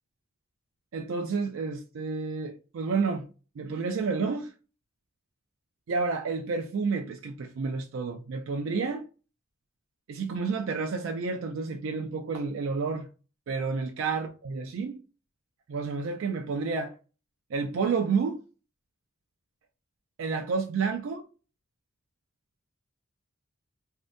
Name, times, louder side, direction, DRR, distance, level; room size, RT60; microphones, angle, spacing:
voice 1, 0.9-3.3 3.6-4.5 5.9-9.1 10.1-13.1 13.5-15.0 15.7-16.9 17.5-18.4 20.2-21.2, right 4 dB, 75° right, 0.4 m, -30 dB
2.6 x 2.2 x 2.5 m
head